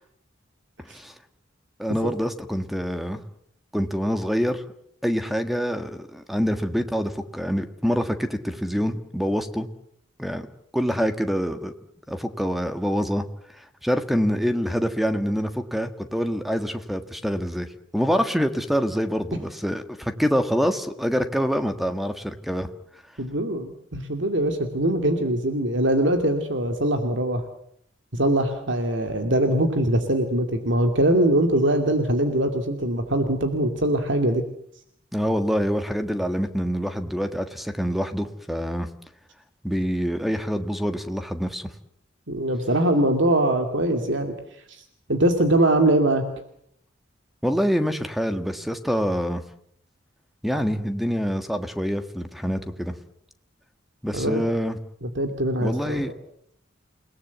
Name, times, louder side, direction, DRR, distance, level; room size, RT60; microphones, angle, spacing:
voice 1, 1.8-3.2 3.7-4.6 5.0-9.7 10.2-10.5 10.7-11.7 12.1-13.2 13.6-17.7 17.9-22.7 35.1-38.9 39.6-41.7 47.4-49.4 50.4-52.9 54.0-54.8 55.6-56.1, equal, ahead, 9 dB, 1.5 m, -26 dB
voice 2, 23.2-27.4 28.1-34.4 42.3-44.3 44.7-44.8 45.1-46.2 54.1-54.4 55.0-56.0, right 1 dB, 65° right, 6 dB, 2.5 m, -22 dB
29.0 x 18.5 x 8.2 m, 0.70 s
head